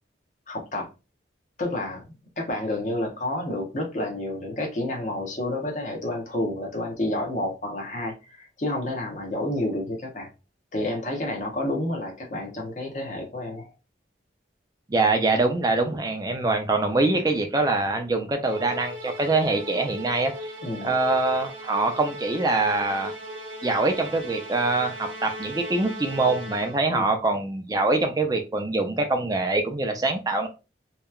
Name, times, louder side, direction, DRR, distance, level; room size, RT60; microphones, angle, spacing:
voice 1, 0.5-0.9 1.6-2.0 2.4-10.3 10.7-13.7 20.6-20.9 26.9-27.1, left 1 dB, 40° left, 0.7 m, -30 dB
voice 2, 14.9-20.5 20.8-23.1 23.6-30.5, right 2 dB, 20° right, 0.4 m, -24 dB
Musical instrument, 18.4-27.0, equal, 80° right, 0.7 m, -38 dB
2.8 x 2.2 x 2.3 m
head